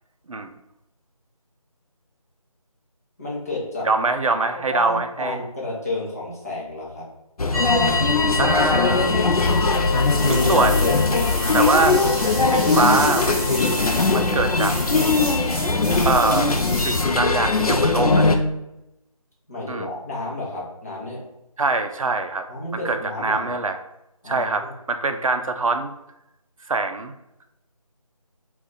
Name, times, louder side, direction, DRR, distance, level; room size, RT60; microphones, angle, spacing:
voice 1, 3.2-3.9 4.7-7.1 19.5-21.2 22.5-23.5 24.2-24.7, left 2 dB, 25° left, -5 dB, 0.8 m, -31 dB
voice 2, 3.8-5.4 8.4-9.1 10.2-10.9 11.5-12.0 12.5-13.5 14.1-14.8 16.0-16.5 16.8-18.3 19.7-19.9 21.6-22.5 22.8-23.8 24.3-25.9 26.7-27.1, right 3 dB, 65° right, 7 dB, 0.5 m, -23 dB
sound 1, 7.4-18.4, left 3 dB, 75° left, 0.5 m, -20 dB
sound 2, 7.5-15.2, left 3 dB, 25° right, 1.2 m, -30 dB
sound 3, 9.4-17.0, right 1 dB, 10° right, 0.8 m, -32 dB
3.5 x 2.4 x 3.9 m, 0.88 s
figure-of-eight pair, 165°, 19 cm